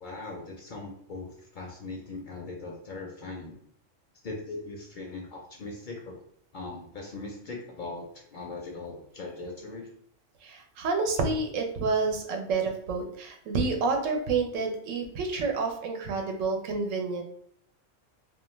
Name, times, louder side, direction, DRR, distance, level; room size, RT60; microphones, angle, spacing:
voice 1, 0.0-3.6 4.2-6.2 6.5-9.9, left 3 dB, 60° left, 0 dB, 0.5 m, -40 dB
voice 2, 10.4-17.2, right 4 dB, 90° right, 3 dB, 1.0 m, -29 dB
2.4 x 2.2 x 3.0 m, 0.67 s
omnidirectional pair, 1.3 m